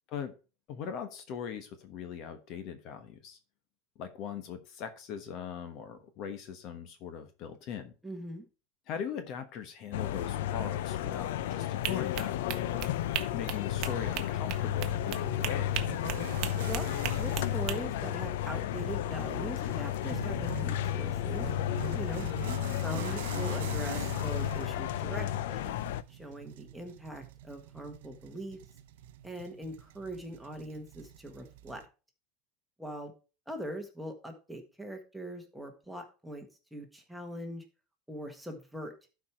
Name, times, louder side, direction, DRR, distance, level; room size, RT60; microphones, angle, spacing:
voice 1, 0.7-3.4 4.0-7.9 8.9-12.4 12.7-15.8 22.6-22.9, left 8 dB, 45° left, 9 dB, 1.1 m, -40 dB
voice 2, 8.0-8.4 16.7-16.9 17.2-21.5 21.9-22.3 22.7-25.7 26.1-28.6 29.2-31.8 32.8-33.1 33.5-37.6 38.1-38.9, right 1 dB, ahead, 3 dB, 1.5 m, -41 dB
sound 1, 9.9-26.0, left 12 dB, 80° left, 0.5 m, -33 dB
sound 2, 11.8-17.8, right 12 dB, 45° right, 0.9 m, -38 dB
sound 3, 14.5-31.8, right 12 dB, 85° right, 0.6 m, -45 dB
12.0 x 4.8 x 4.4 m, 0.33 s
supercardioid pair, 150°, 0 cm